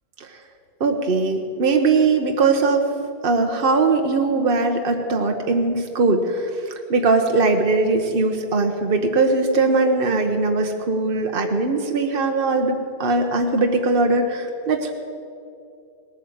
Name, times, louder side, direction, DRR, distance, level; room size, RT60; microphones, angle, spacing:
voice 1, 0.8-2.8 3.2-6.5 6.9-12.7 13.0-14.9, right 3 dB, 60° right, 4 dB, 1.2 m, -20 dB
19.0 x 9.4 x 7.9 m, 2.5 s
omnidirectional pair, 1.1 m